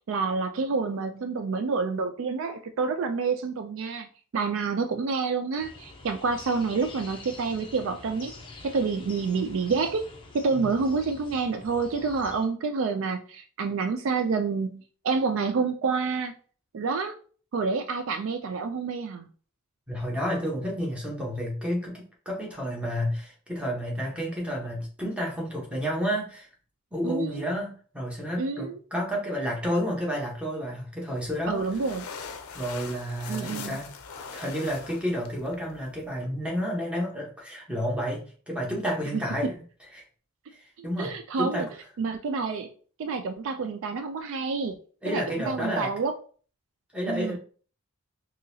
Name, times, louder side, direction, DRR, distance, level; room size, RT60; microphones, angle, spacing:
voice 1, 0.1-4.1 4.3-8.3 8.6-10.1 10.3-16.3 16.7-17.1 17.5-19.3 27.0-27.5 28.4-28.7 31.5-32.0 33.3-33.8 39.1-39.2 41.0-41.7 42.0-42.7 43.0-44.8 45.1-46.1 47.1-47.4, right 4 dB, 60° right, 7 dB, 0.3 m, -28 dB
sound 1, 5.6-12.5, left 2 dB, 20° left, 0.6 m, -46 dB
voice 2, 19.9-26.5 26.9-31.6 32.5-33.9 34.3-39.6 39.9-40.0 40.5-41.7 45.0-45.9 46.9-47.4, equal, 5° right, -2 dB, 1.0 m, -31 dB
sound 2, 31.1-36.2, left 6 dB, 70° left, 0.5 m, -42 dB
3.9 x 2.8 x 2.7 m, 0.42 s
head